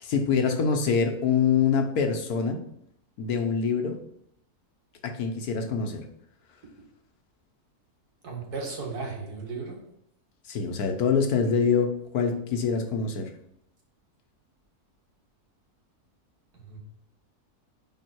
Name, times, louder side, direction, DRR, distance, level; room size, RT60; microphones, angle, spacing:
voice 1, 0.0-2.6 3.2-4.0 5.0-6.1 10.5-13.3, left 6 dB, 75° left, 5 dB, 1.4 m, -25 dB
voice 2, 8.2-9.9 16.5-16.8, right 4 dB, 90° right, -1 dB, 2.3 m, -35 dB
5.5 x 5.0 x 4.6 m, 0.73 s
omnidirectional pair, 1.6 m